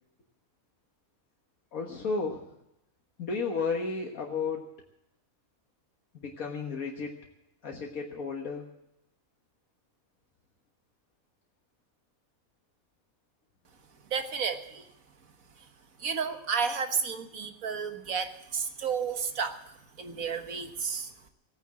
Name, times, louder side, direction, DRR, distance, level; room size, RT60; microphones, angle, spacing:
voice 1, 1.7-2.5 3.2-4.7 6.1-7.2 7.6-8.7, left 4 dB, 75° left, 1 dB, 1.9 m, -33 dB
voice 2, 14.1-14.9 16.0-21.1, right 6 dB, 75° right, 7 dB, 1.7 m, -32 dB
17.5 x 9.5 x 7.6 m, 0.83 s
omnidirectional pair, 1.5 m